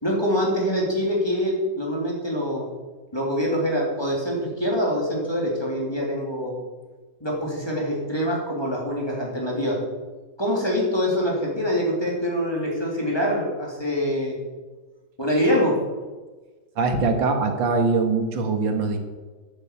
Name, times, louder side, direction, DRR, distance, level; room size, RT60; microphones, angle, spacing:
voice 1, 0.0-2.7 3.1-6.5 7.2-9.8 10.4-14.4 15.2-15.8, equal, 15° left, -3 dB, 3.3 m, -24 dB
voice 2, 16.8-19.0, right 3 dB, 85° right, 5 dB, 2.2 m, -22 dB
10.5 x 8.1 x 8.2 m, 1.3 s
omnidirectional pair, 2.0 m